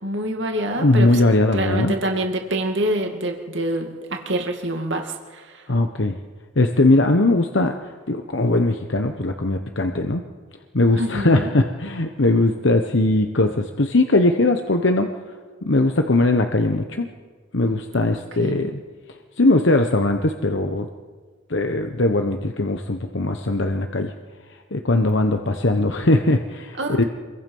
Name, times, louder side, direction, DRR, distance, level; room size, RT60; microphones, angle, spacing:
voice 1, 0.0-1.2 1.5-5.6 10.9-11.5 18.4-18.8 26.8-27.1, right 1 dB, 70° right, 3 dB, 2.2 m, -26 dB
voice 2, 0.8-1.9 5.7-6.1 6.6-7.8 8.1-10.2 10.7-15.1 15.6-17.1 17.5-18.8 19.4-20.9 21.5-24.1 24.7-27.0, left 2 dB, 65° left, 5 dB, 1.1 m, -20 dB
28.0 x 22.5 x 5.5 m, 1.5 s
head